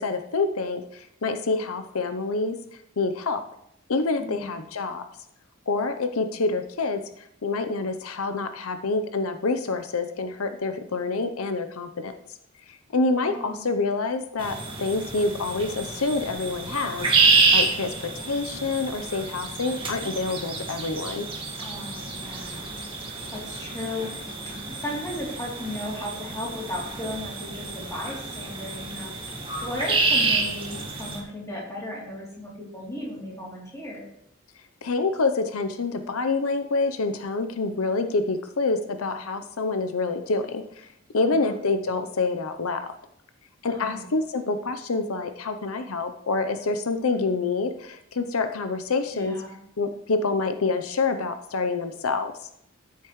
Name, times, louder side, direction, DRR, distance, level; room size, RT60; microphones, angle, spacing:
voice 1, 0.0-2.6 3.0-3.4 3.9-5.0 5.7-12.1 12.7-21.3 34.8-40.9 41.1-42.9 43.6-49.4 49.8-52.3, left 3 dB, 80° left, 8 dB, 0.7 m, -27 dB
voice 2, 4.2-4.5 13.3-13.7 21.6-22.7 23.3-24.1 24.8-29.1 29.6-34.1 41.2-41.6 43.6-44.1 49.1-49.6, left 1 dB, 15° left, -4 dB, 3.0 m, -35 dB
sound 1, 14.4-31.2, right 4 dB, 25° right, 1.7 m, -28 dB
14.0 x 8.2 x 3.1 m, 0.74 s
head